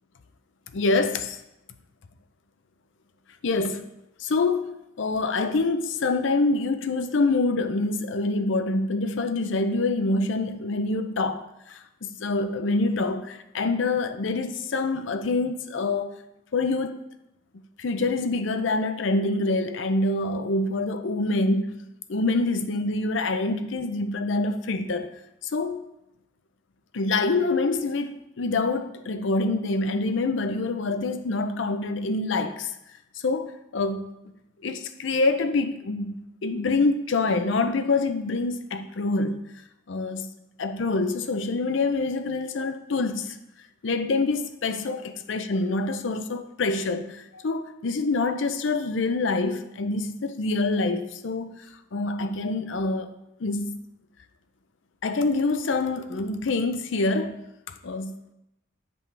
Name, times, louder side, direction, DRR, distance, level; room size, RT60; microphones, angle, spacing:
voice 1, 0.7-1.4 3.4-3.9 4.2-16.2 16.5-17.0 17.8-21.6 22.1-25.2 25.4-25.9 26.9-32.7 33.2-34.1 34.6-39.5 39.9-40.3 40.6-43.4 43.8-45.0 45.3-53.1 53.4-53.8 55.0-58.1, left 3 dB, 70° left, 0.5 m, -26 dB
8.8 x 5.3 x 3.3 m
head